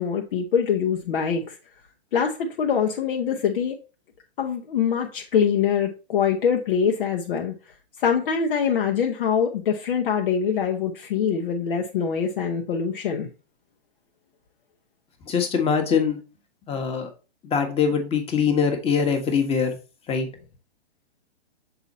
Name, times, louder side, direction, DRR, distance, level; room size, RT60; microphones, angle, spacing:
voice 1, 0.0-1.5 2.1-3.8 4.4-7.5 8.0-13.3, left 7 dB, 55° left, 2 dB, 1.0 m, -24 dB
voice 2, 15.3-16.2 16.7-17.1 17.4-19.7 20.1-20.3, left 6 dB, 20° left, 5 dB, 1.4 m, -23 dB
6.9 x 4.3 x 4.1 m, 0.33 s
hypercardioid pair, 130°, 32 cm